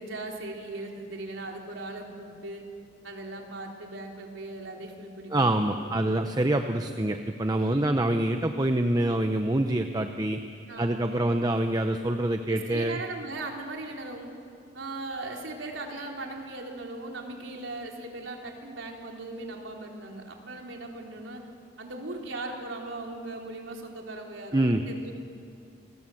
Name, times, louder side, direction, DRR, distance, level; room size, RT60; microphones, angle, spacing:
voice 1, 0.0-2.6 3.0-6.3 7.6-8.1 10.7-11.5 12.5-14.3 14.7-21.5 21.8-25.1, right 2 dB, 90° right, 1 dB, 3.8 m, -39 dB
voice 2, 5.3-10.4 10.8-13.0 24.5-24.8, right 1 dB, 20° right, 6 dB, 0.8 m, -26 dB
28.0 x 20.0 x 7.8 m, 2.4 s
head